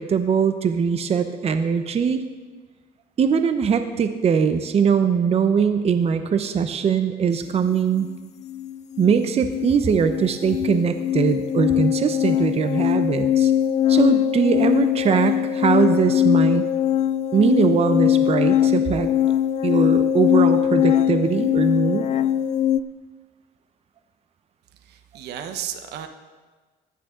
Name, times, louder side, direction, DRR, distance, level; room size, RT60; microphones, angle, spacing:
voice 1, 0.0-2.2 3.2-8.1 9.0-13.5 13.9-16.6 17.3-19.1 19.6-22.1, right 6 dB, 35° right, 8 dB, 0.8 m, -21 dB
sound 1, 8.0-8.2 8.4-22.8, left 10 dB, 45° left, 0.4 m, -21 dB
voice 2, 24.8-26.1, right 9 dB, 75° right, 8 dB, 1.1 m, -33 dB
15.0 x 11.0 x 3.8 m, 1.4 s
cardioid pair, 110°, 17 cm